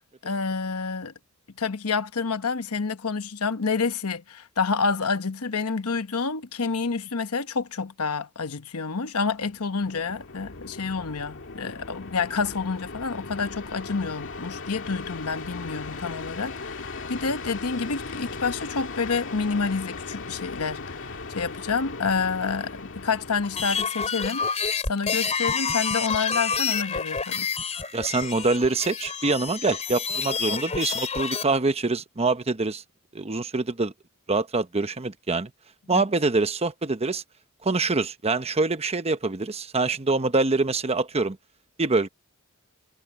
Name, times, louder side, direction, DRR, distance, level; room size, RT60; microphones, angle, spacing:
voice 1, 0.2-1.1 1.6-27.5 35.9-36.0, left 4 dB, 75° left, 1.1 m, -28 dB
sound 1, 9.4-23.8, left 3 dB, 60° left, 2.2 m, -38 dB
sound 2, 23.4-31.4, left 6 dB, 30° left, 3.7 m, -28 dB
voice 2, 27.9-32.8 33.1-33.9 34.3-35.5 35.9-37.2 37.6-41.4 41.8-42.1, right 3 dB, 30° right, 1.0 m, -25 dB
head